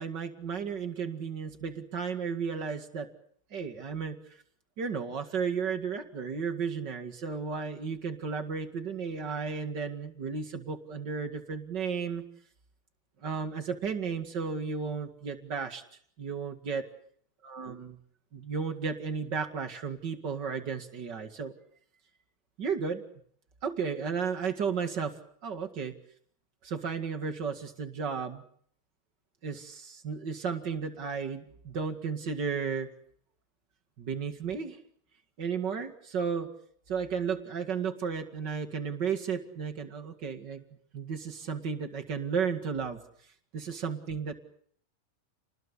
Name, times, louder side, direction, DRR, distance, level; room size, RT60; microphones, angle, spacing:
voice 1, 0.0-3.1 3.5-4.4 4.8-12.2 13.2-15.8 16.2-16.9 17.4-18.0 18.3-21.5 22.6-23.0 23.6-26.0 26.6-28.4 29.4-32.9 34.0-34.8 35.4-36.5 36.9-40.6 40.9-43.0 43.5-44.3, right 6 dB, 35° right, 5 dB, 1.8 m, -33 dB
30.0 x 20.5 x 8.3 m, 0.62 s
omnidirectional pair, 4.6 m